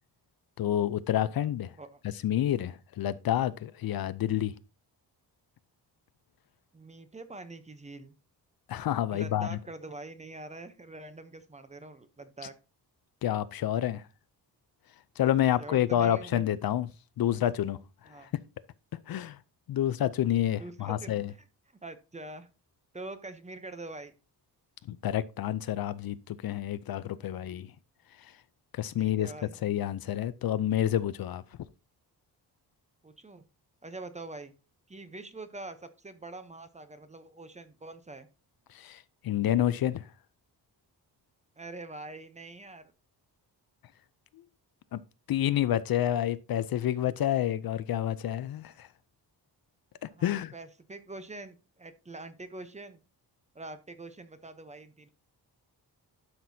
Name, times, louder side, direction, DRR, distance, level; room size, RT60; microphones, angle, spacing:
voice 1, 0.6-1.7 2.2-4.5 8.7-9.6 13.2-14.0 15.2-16.9 17.2-17.8 18.2-18.3 19.1-19.4 19.7-21.3 24.9-27.7 28.8-29.3 29.6-31.4 38.7-40.0 44.9-45.0 45.3-48.9 50.2-50.5, left 11 dB, 60° left, 0.5 m, -28 dB
voice 2, 6.7-8.1 9.1-12.5 15.6-16.4 18.1-18.3 20.6-21.1 21.8-22.5 22.9-24.1 29.0-29.6 33.0-33.4 33.8-34.5 34.9-38.3 41.6-42.9 50.1-53.0 53.5-55.1, right 2 dB, 15° right, 0.6 m, -44 dB
12.0 x 6.0 x 2.7 m
wide cardioid pair, 175°, 41 cm